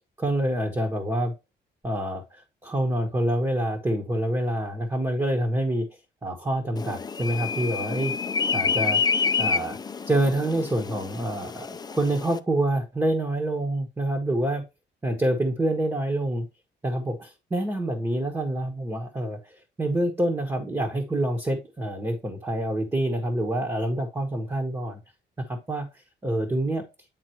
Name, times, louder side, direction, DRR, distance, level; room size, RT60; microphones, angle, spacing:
voice 1, 0.2-1.3 1.8-5.9 6.2-8.1 8.5-9.8 10.1-14.6 15.0-16.5 16.8-25.0 25.5-25.9 26.2-26.8, right 1 dB, 15° right, 2 dB, 1.2 m, -27 dB
sound 1, 6.8-12.4, left 5 dB, 20° left, 0.4 m, -28 dB
9.1 x 4.0 x 2.9 m, 0.25 s
cardioid pair, 130°, 19 cm